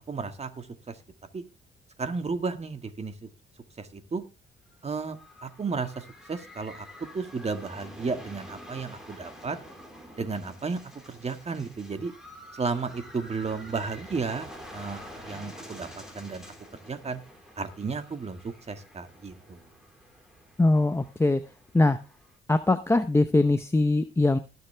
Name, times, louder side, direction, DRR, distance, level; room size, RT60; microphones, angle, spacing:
voice 1, 0.1-1.0 1.3-1.4 2.0-3.3 3.8-4.2 4.8-6.9 7.1-9.6 10.2-12.1 12.5-15.9 16.1-16.4 16.8-17.2 17.6-19.6, right 4 dB, 30° right, 8 dB, 2.0 m, -33 dB
sound 1, 4.7-22.4, equal, 5° right, 4.2 m, -48 dB
voice 2, 20.6-21.4 21.7-22.0 22.5-24.4, left 2 dB, 15° left, 9 dB, 0.8 m, -22 dB
19.5 x 6.7 x 3.4 m, 0.28 s
cardioid pair, 90°, 20 cm